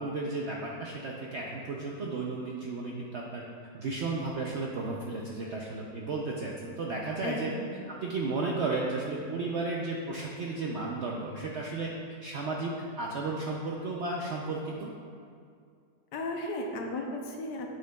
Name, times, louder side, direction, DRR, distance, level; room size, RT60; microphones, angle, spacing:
voice 1, 0.0-3.4 3.7-7.5 7.9-11.9 12.2-14.9, right 3 dB, 70° right, -2 dB, 0.6 m, -34 dB
voice 2, 7.2-7.7 16.1-17.7, left 2 dB, 85° left, 2 dB, 1.4 m, -35 dB
8.7 x 6.4 x 2.3 m, 2.3 s
omnidirectional pair, 1.8 m